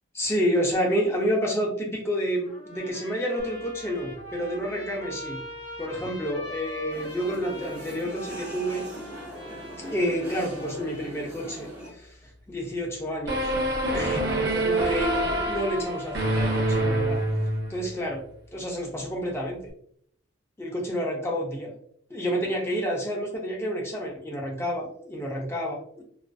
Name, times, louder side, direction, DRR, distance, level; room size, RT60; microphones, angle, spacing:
voice 1, 0.1-5.4 5.8-8.8 9.8-12.2 12.5-13.5 13.9-17.2 17.7-18.2 18.5-19.6 20.6-21.7 22.1-26.0, equal, 10° left, -1 dB, 0.4 m, -29 dB
Trumpet, 2.4-11.0, equal, 40° left, 1.1 m, -42 dB
sound 1, 6.9-11.9, equal, 15° right, 1.1 m, -41 dB
sound 2, 13.3-17.9, right 1 dB, 55° right, 0.6 m, -26 dB
2.4 x 2.3 x 2.2 m, 0.64 s
head